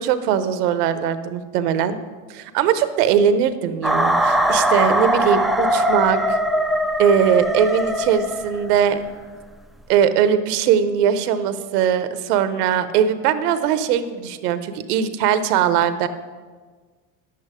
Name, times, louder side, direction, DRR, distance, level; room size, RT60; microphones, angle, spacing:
voice 1, 0.0-2.0 2.3-6.4 7.0-9.0 9.9-16.1, right 8 dB, 85° right, 12 dB, 0.8 m, -20 dB
sound 1, 3.8-8.8, equal, ahead, 0.4 m, -21 dB
10.5 x 8.5 x 4.9 m, 1.5 s
hypercardioid pair, 85°, 46 cm